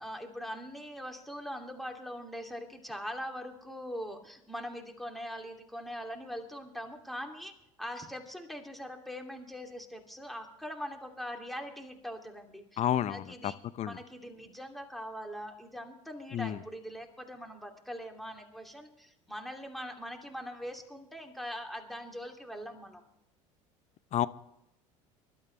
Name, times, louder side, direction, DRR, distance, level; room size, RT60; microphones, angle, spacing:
voice 1, 0.0-7.5 7.8-12.8 13.1-13.5 13.9-23.0, equal, ahead, 2 dB, 2.8 m, -42 dB
voice 2, 12.8-14.0 16.3-16.6 24.1-24.3, left 11 dB, 45° left, 16 dB, 0.7 m, -31 dB
23.5 x 12.5 x 3.4 m, 0.81 s
hypercardioid pair, 80°, 16 cm